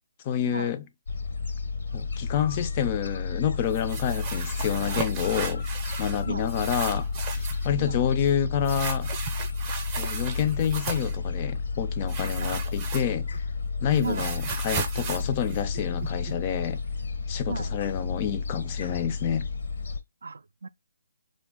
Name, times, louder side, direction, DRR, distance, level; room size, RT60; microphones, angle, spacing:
voice 1, 0.2-0.8 1.9-5.7 6.0-9.1 9.9-13.3 13.8-16.8 17.3-19.5, left 9 dB, 30° left, 0.3 m, -28 dB
Gull seagull, 1.1-20.0, left 4 dB, 65° left, 0.6 m, -31 dB
sound 1, 3.7-6.2 6.5-7.7 8.7-11.2 12.1-13.4 13.7-16.3, right 5 dB, 20° right, 0.5 m, -35 dB
voice 2, 14.0-14.3 17.5-17.7 20.2-20.7, right 5 dB, 75° right, 0.3 m, -35 dB
2.5 x 2.1 x 3.4 m
hypercardioid pair, 155°, 0 cm